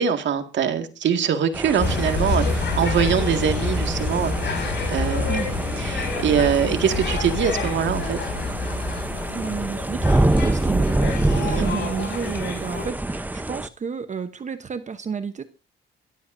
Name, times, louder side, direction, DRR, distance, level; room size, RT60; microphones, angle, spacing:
voice 1, 0.0-5.3 5.8-8.2 11.4-11.7, right 8 dB, 65° right, 7 dB, 2.0 m, -23 dB
sound 1, 1.5-13.7, right 2 dB, 10° right, 0.8 m, -27 dB
sound 2, 1.8-12.9, left 3 dB, 60° left, 6.2 m, -27 dB
voice 2, 9.3-11.2 11.4-15.4, right 6 dB, 35° right, 10 dB, 1.0 m, -31 dB
23.0 x 14.0 x 2.7 m, 0.31 s
cardioid pair, 90°, 20 cm